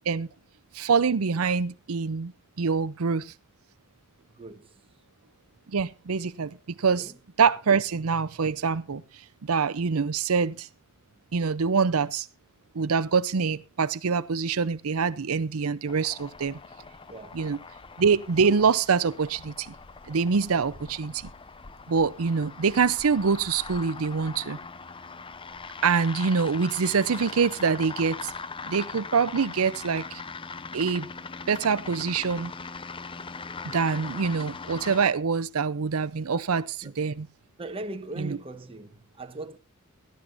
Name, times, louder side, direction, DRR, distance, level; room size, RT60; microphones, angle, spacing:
voice 1, 0.7-2.3 2.6-3.3 5.7-7.1 7.4-10.7 11.3-12.3 12.7-16.6 17.3-17.6 18.0-19.7 20.1-21.3 21.9-24.6 25.8-28.3 28.6-30.2 30.7-31.1 31.5-32.5 33.7-37.3 38.2-38.4, right 5 dB, 75° right, 0.6 m, -25 dB
voice 2, 4.3-4.8 7.0-7.2 17.1-17.4 36.3-36.4 36.8-36.9 37.6-39.6, right 2 dB, 25° right, 1.3 m, -39 dB
sound 1, 15.9-35.1, left 4 dB, 25° left, 0.6 m, -41 dB
17.0 x 13.5 x 2.6 m
head